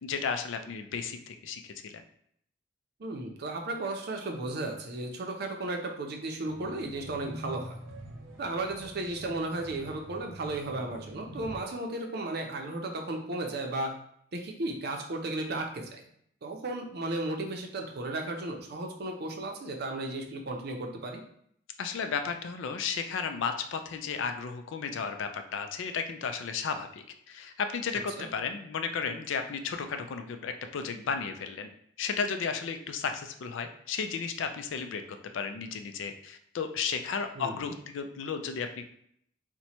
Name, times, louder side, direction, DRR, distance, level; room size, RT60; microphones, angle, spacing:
voice 1, 0.0-2.0 21.8-31.7 32.0-35.0 35.3-38.8, left 6 dB, 75° left, 7 dB, 0.4 m, -34 dB
voice 2, 3.0-7.8 8.4-13.9 14.3-16.0 16.4-21.2 28.2-28.3 37.4-37.7, right 2 dB, 55° right, 3 dB, 0.5 m, -34 dB
sound 1, 6.5-11.6, equal, 85° right, 0.8 m, -45 dB
2.9 x 2.2 x 4.1 m, 0.67 s
head